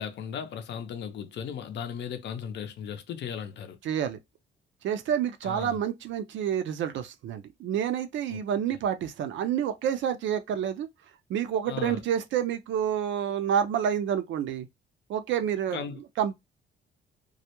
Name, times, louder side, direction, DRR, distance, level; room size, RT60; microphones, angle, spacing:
voice 1, 0.0-3.8 5.4-5.8 8.3-8.4 11.7-12.0 15.7-16.0, left 8 dB, 65° left, 0.5 m, -36 dB
voice 2, 3.8-4.2 4.8-10.9 11.3-14.7 15.1-15.8 16.2-16.3, right 9 dB, 70° right, 0.5 m, -28 dB
2.3 x 2.1 x 2.8 m
cardioid pair, 90°, 20 cm